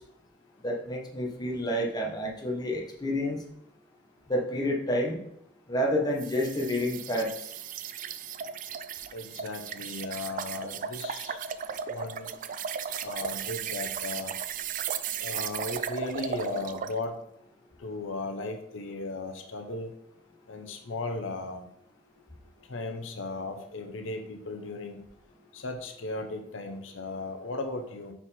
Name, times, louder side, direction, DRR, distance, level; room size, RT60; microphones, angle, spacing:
voice 1, 0.6-3.4 4.3-5.2 5.7-7.5, equal, 20° left, 1.1 m, -29 dB
sound 1, 6.2-17.0, right 7 dB, 45° right, 0.3 m, -36 dB
voice 2, 9.1-11.4 11.9-12.3 13.0-14.3 15.2-17.1 17.8-19.9 20.5-21.7 22.7-25.0 25.5-28.1, left 2 dB, 85° left, 0.8 m, -36 dB
5.6 x 4.5 x 4.3 m
head